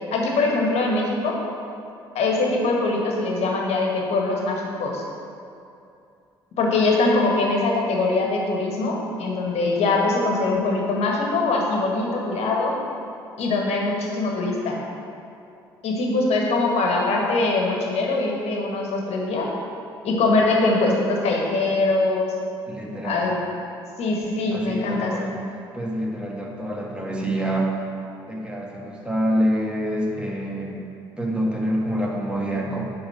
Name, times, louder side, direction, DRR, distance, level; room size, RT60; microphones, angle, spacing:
voice 1, 0.1-1.4 2.1-5.0 6.6-12.7 13.4-14.8 15.8-19.5 20.0-22.3 23.0-23.4 24.0-25.3, left 3 dB, 60° left, -1 dB, 1.5 m, -22 dB
voice 2, 22.7-23.3 24.5-25.4 25.7-27.7 28.3-30.8 31.2-32.8, equal, 10° right, -3 dB, 1.7 m, -26 dB
9.4 x 3.9 x 5.7 m, 2.6 s
hypercardioid pair, 50°, 12 cm